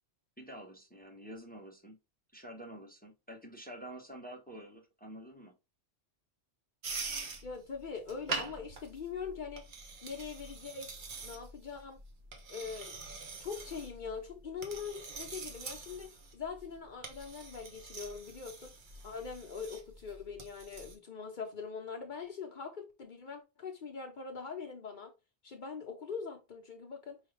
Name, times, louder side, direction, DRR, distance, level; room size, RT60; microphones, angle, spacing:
voice 1, 0.4-2.0 2.3-5.6, right 1 dB, 10° left, 0.6 m, -48 dB
sound 1, 6.8-20.9, right 4 dB, 50° right, 0.8 m, -44 dB
voice 2, 7.4-9.7 10.0-10.9 11.2-12.0 12.5-13.1 13.4-18.7 19.0-25.1 25.4-27.2, left 5 dB, 50° left, 0.7 m, -42 dB
4.9 x 2.4 x 3.1 m
omnidirectional pair, 1.1 m